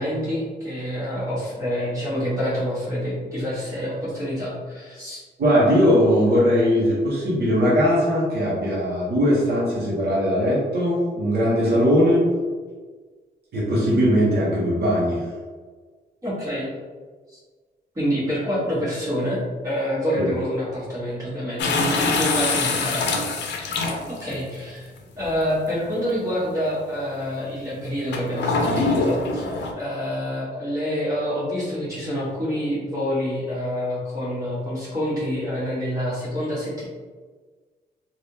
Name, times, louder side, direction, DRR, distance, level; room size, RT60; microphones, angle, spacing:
voice 1, 0.0-5.2 16.2-16.7 17.3-17.4 17.9-24.9 25.2-36.8, equal, 20° right, -9 dB, 1.3 m, -27 dB
voice 2, 5.4-12.3 13.5-15.2 20.2-20.3, equal, 65° right, -6 dB, 0.9 m, -20 dB
sound 1, 21.6-24.3 25.2-25.3 28.1-29.7, left 3 dB, 85° left, 0.5 m, -24 dB
3.4 x 2.4 x 2.7 m, 1.4 s
wide cardioid pair, 165°, 18 cm